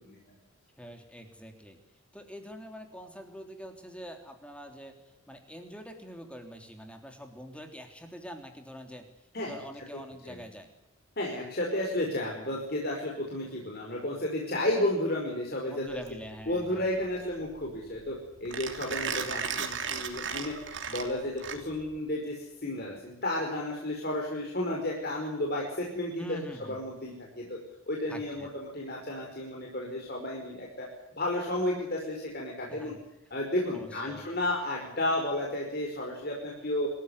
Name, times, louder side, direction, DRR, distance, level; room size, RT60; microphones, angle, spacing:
voice 1, 0.0-0.4 9.3-9.6 10.2-10.4 11.2-16.0 16.5-20.6 20.9-27.6 27.9-30.9 31.2-32.9 33.3-36.9, left 1 dB, 45° left, -1 dB, 5.3 m, -32 dB
voice 2, 0.8-1.8 2.1-4.9 5.3-9.1 9.5-10.7 15.7-16.8 19.0-19.4 26.2-26.8 28.1-28.5 32.8-33.0 33.7-34.3, equal, 5° left, 5 dB, 3.3 m, -44 dB
Mechanisms, 16.0-22.0, right 6 dB, 55° right, 3.1 m, -36 dB
26.0 x 15.0 x 9.8 m, 0.86 s
head